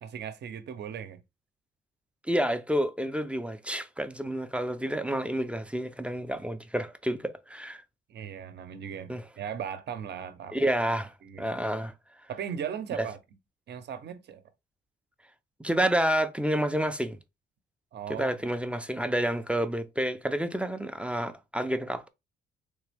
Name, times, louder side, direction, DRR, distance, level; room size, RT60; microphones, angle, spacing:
voice 1, 0.0-1.2 8.1-10.6 11.2-11.5 12.3-13.2 13.7-14.4 17.9-18.4, right 8 dB, 60° right, 0.7 m, -38 dB
voice 2, 2.3-7.8 9.1-9.2 10.5-11.9 13.0-13.1 15.6-17.2 18.1-22.1, right 1 dB, 5° right, 0.4 m, -29 dB
3.4 x 3.1 x 3.4 m
cardioid pair, 90°, 20 cm